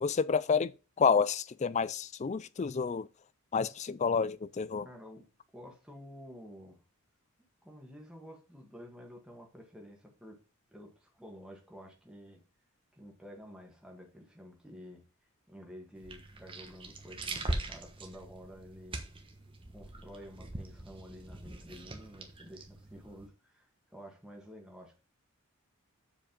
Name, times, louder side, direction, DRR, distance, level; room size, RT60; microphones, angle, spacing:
voice 1, 0.0-0.7 1.0-3.1 3.5-4.9, left 5 dB, 30° left, 0.3 m, -29 dB
voice 2, 4.8-5.3 5.5-6.8 7.6-10.4 10.7-12.4 12.9-15.0 15.5-19.0 19.7-25.0, equal, 5° right, 1.8 m, -51 dB
sound 1, 15.9-23.3, right 2 dB, 25° right, 1.2 m, -42 dB
7.2 x 5.1 x 5.2 m
head